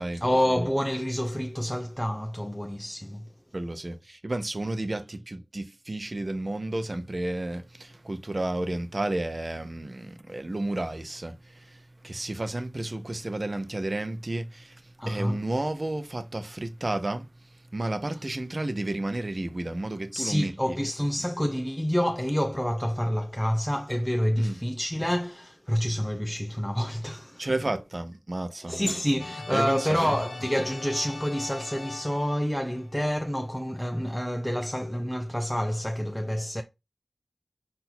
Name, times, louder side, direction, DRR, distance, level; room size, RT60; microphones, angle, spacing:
voice 1, 0.2-3.3 15.0-15.4 20.1-27.5 28.6-36.6, equal, 10° left, 0.5 m, -28 dB
voice 2, 3.5-20.8 24.4-24.6 27.4-28.8 29.5-30.1, right 2 dB, 45° right, 0.7 m, -32 dB
sound 1, 29.2-33.0, left 3 dB, 80° left, 0.6 m, -42 dB
4.3 x 2.7 x 3.9 m
wide cardioid pair, 45°, 0 cm